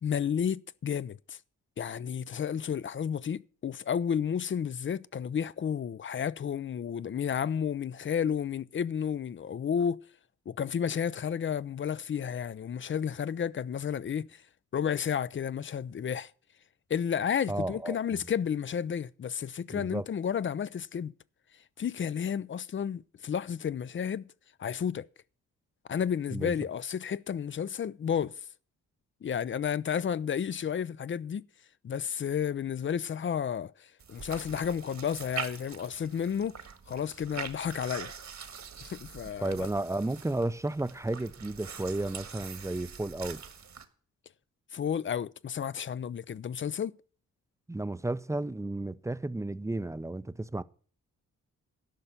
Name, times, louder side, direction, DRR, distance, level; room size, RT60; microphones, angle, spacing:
voice 1, 0.0-1.4 1.8-10.0 10.5-14.4 14.7-16.3 16.9-21.1 21.8-24.3 24.6-25.1 25.9-28.4 29.2-31.5 31.8-36.6 36.9-38.1 38.8-39.6 44.7-47.0, left 8 dB, 40° left, 0.5 m, -32 dB
voice 2, 17.5-18.2 19.7-20.1 26.3-26.5 39.4-43.4 47.7-50.6, right 2 dB, 10° right, 0.5 m, -33 dB
sound 1, 34.0-43.8, right 6 dB, 60° right, 1.6 m, -44 dB
12.5 x 5.6 x 8.8 m
cardioid pair, 65°, 32 cm